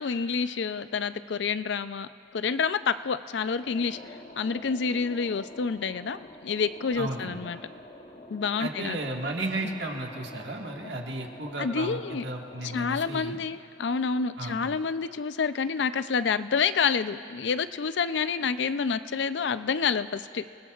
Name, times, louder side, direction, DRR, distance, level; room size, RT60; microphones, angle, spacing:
voice 1, 0.0-4.0 4.4-7.6 8.3-9.0 9.6-9.8 11.6-12.2 12.6-20.4, left 5 dB, 70° left, 12 dB, 0.5 m, -28 dB
sound 1, 3.6-12.9, left 1 dB, 40° left, 1.0 m, -47 dB
voice 2, 6.9-7.4 8.6-13.4 14.4-14.6, right 2 dB, 70° right, 1 dB, 1.7 m, -34 dB
28.5 x 19.5 x 2.4 m, 2.4 s
head